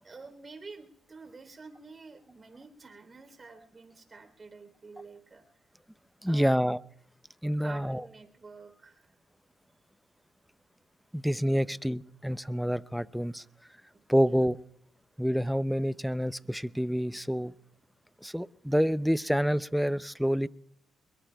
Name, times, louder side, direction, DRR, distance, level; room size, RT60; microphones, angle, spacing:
voice 1, 0.0-5.4 6.2-6.7 7.6-9.1 14.2-14.4, right 4 dB, 30° right, 7 dB, 3.4 m, -49 dB
voice 2, 6.2-6.8 7.4-8.0 11.1-13.4 14.1-14.6 15.2-17.5 18.2-20.5, equal, ahead, 16 dB, 0.5 m, -28 dB
25.0 x 22.0 x 2.3 m, 0.71 s
cardioid pair, 90°, 0 cm